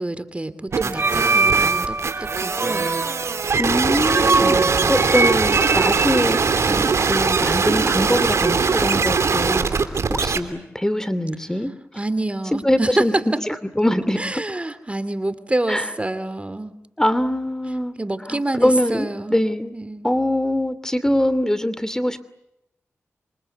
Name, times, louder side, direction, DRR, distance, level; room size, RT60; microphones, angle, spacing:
voice 1, 0.0-2.8 4.3-5.1 12.0-13.2 14.2-16.7 18.0-19.4 19.7-20.1, right 2 dB, 25° right, 13 dB, 2.7 m, -27 dB
sound 1, 0.7-7.6, right 3 dB, 50° right, 2.9 m, -24 dB
sound 2, 0.7-10.4, right 5 dB, 75° right, 3.0 m, -21 dB
voice 2, 3.6-4.6 4.9-11.7 12.6-13.2 13.5-14.4 15.7-15.9 17.0-17.9 18.3-19.7 20.0-22.2, left 1 dB, 10° left, 14 dB, 2.7 m, -23 dB
27.5 x 25.5 x 8.2 m, 0.87 s
cardioid pair, 40°, 5 cm